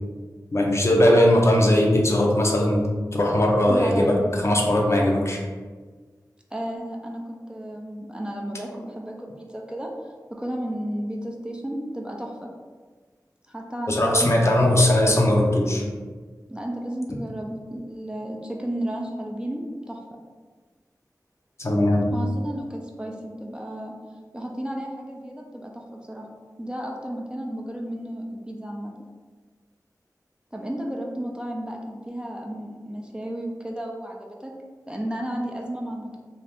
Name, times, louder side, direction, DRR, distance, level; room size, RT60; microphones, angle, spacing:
voice 1, 0.5-2.9 3.1-5.4 13.9-15.8 21.6-22.1, left 1 dB, 40° left, -1 dB, 0.6 m, -19 dB
voice 2, 1.1-1.5 3.7-4.9 6.5-9.9 10.3-12.5 13.5-14.7 16.5-20.0 22.1-23.9 24.3-26.3 26.6-28.9 30.5-34.5 34.9-36.2, right 1 dB, 15° right, -1 dB, 0.4 m, -33 dB
2.7 x 2.4 x 3.4 m, 1.5 s
wide cardioid pair, 50°, 7 cm